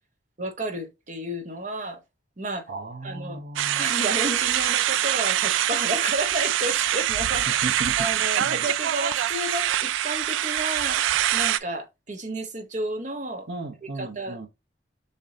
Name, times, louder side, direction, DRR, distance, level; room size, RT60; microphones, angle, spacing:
voice 1, 0.4-2.0 2.4-2.6 3.0-3.4 3.8-7.6 8.0-11.0 11.3-13.5 14.0-14.5, right 1 dB, 40° right, 1.0 m, -31 dB
voice 2, 2.7-3.9 7.6-8.1 8.4-8.7 13.5-14.5, right 2 dB, 70° right, 0.9 m, -35 dB
sound 1, 3.6-11.6, right 12 dB, 90° right, 0.3 m, -24 dB
6.7 x 2.7 x 2.7 m
head